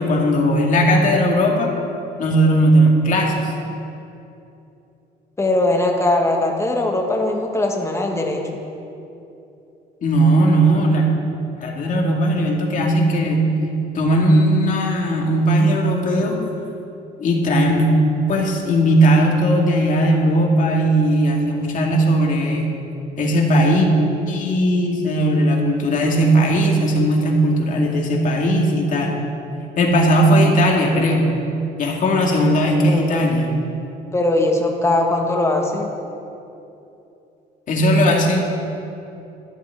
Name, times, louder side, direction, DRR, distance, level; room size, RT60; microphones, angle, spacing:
voice 1, 0.0-1.7 2.2-3.5 10.0-11.1 11.6-13.5 13.9-16.4 17.2-17.9 18.3-22.7 23.2-23.9 24.3-29.2 29.8-31.3 31.8-33.5 37.7-38.4, right 1 dB, 50° left, 0 dB, 2.3 m, -17 dB
voice 2, 5.4-8.6 32.9-33.1 34.1-35.9, left 2 dB, 15° left, 1 dB, 1.7 m, -20 dB
12.5 x 11.0 x 5.0 m, 2.8 s
cardioid pair, 110°, 17 cm